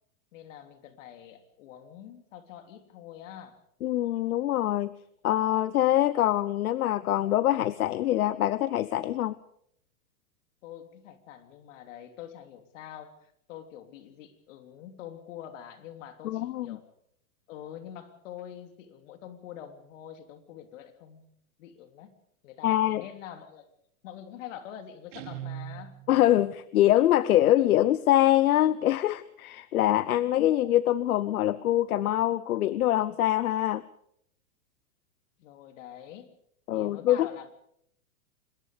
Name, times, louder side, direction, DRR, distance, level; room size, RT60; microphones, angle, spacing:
voice 1, 0.3-3.6 10.6-16.8 17.5-22.2 22.4-23.7 24.0-26.0 35.4-36.3 36.7-37.5, left 10 dB, 60° left, 8 dB, 3.4 m, -45 dB
voice 2, 3.8-4.9 5.2-9.4 16.2-16.8 22.6-23.0 26.1-33.8 36.7-37.3, left 13 dB, 80° left, 18 dB, 0.9 m, -24 dB
Guitar, 25.1-26.4, right 10 dB, 55° right, 3.1 m, -40 dB
26.0 x 21.0 x 5.2 m, 0.71 s
hypercardioid pair, 135°, 43 cm